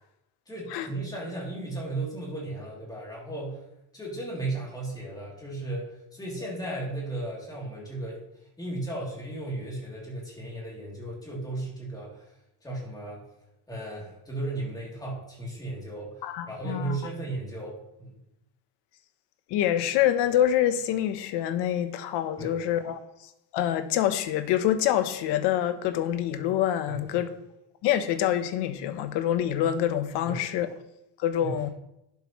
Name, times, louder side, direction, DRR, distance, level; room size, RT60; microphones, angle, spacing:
voice 1, 0.5-3.6 3.9-8.2 8.6-12.3 12.6-13.2 13.7-18.2 22.4-22.6 26.9-27.2 30.2-30.4 31.4-31.6, right 2 dB, 10° left, 3.2 m, -35 dB
voice 2, 16.2-17.0 19.5-23.0 23.5-27.3 27.8-30.7 31.2-31.7, left 11 dB, 75° left, 1.1 m, -26 dB
11.5 x 9.6 x 3.2 m
cardioid pair, 170°, 41 cm